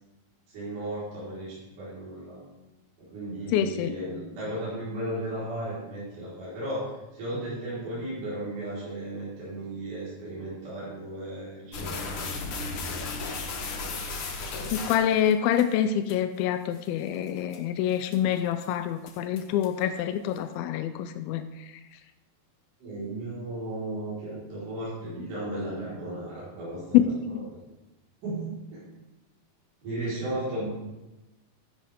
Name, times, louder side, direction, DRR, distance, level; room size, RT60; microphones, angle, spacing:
voice 1, 0.5-2.5 3.0-12.3 22.8-27.1 27.5-27.6 28.2-28.8 29.8-30.7, right 1 dB, 60° right, -10 dB, 6.0 m, -35 dB
voice 2, 3.5-3.9 14.7-21.7 26.9-27.5, left 10 dB, 90° left, 9 dB, 2.5 m, -26 dB
sound 1, 11.7-15.6 16.1-16.2 16.7-16.9 17.3-17.6 18.0-18.3 18.6-18.7 19.1-19.8, left 3 dB, 60° left, 1.4 m, -34 dB
12.5 x 10.5 x 3.6 m, 1.0 s
omnidirectional pair, 4.2 m